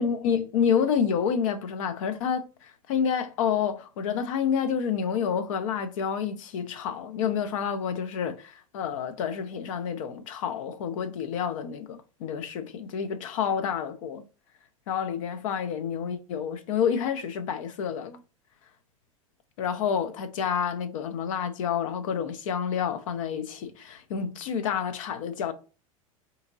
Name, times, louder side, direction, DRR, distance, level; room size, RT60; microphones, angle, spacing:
voice 1, 0.0-14.2 14.9-18.2 19.6-25.5, left 7 dB, 65° left, 0.5 m, -29 dB
3.6 x 2.8 x 2.5 m
hypercardioid pair, 90°, 18 cm